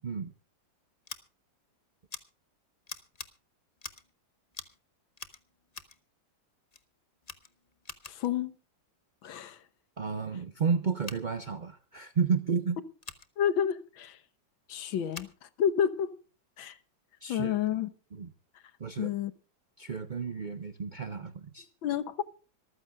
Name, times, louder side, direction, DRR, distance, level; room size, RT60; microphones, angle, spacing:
Scissors, 1.0-1.2 2.1-2.2 2.9-3.3 3.8-4.1 4.5-4.8 5.1-6.0 6.7-6.8 7.2-8.3 11.0-11.2 13.0-13.3 15.1-15.3, left 4 dB, 25° left, 0.9 m, -45 dB
voice 1, 8.1-8.5 9.2-9.6 13.4-14.2 14.7-15.3 15.6-16.1 16.6-16.8 17.3-17.9 19.0-19.3 21.8-22.2, left 9 dB, 90° left, 1.8 m, -29 dB
voice 2, 10.0-12.8 17.2-17.6 18.1-18.3 18.8-19.1 19.8-21.7, right 5 dB, 50° right, 0.5 m, -32 dB
25.5 x 14.5 x 2.4 m
omnidirectional pair, 2.1 m